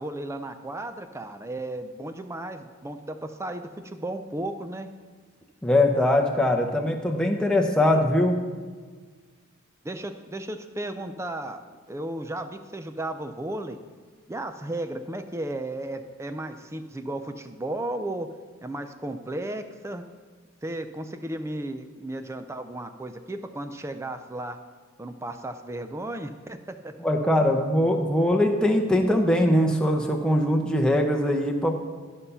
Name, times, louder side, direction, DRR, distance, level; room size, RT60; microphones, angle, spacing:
voice 1, 0.0-4.9 9.8-13.8 14.3-18.3 18.6-20.0 20.6-24.6 25.0-26.9, right 1 dB, 15° right, 8 dB, 0.4 m, -34 dB
voice 2, 5.6-8.4 27.0-31.7, left 1 dB, 5° left, 1 dB, 0.8 m, -22 dB
12.5 x 5.5 x 5.6 m, 1.5 s
head